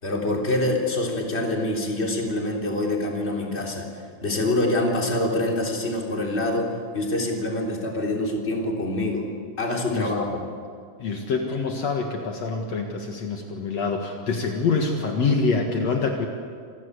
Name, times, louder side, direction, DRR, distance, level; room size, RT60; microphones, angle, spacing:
voice 1, 0.0-3.9 4.2-9.3 9.6-10.4, left 1 dB, 20° left, 0 dB, 3.6 m, -25 dB
voice 2, 11.0-16.3, left 4 dB, 60° left, 2 dB, 2.8 m, -25 dB
27.5 x 18.5 x 8.4 m, 2.1 s
omnidirectional pair, 3.4 m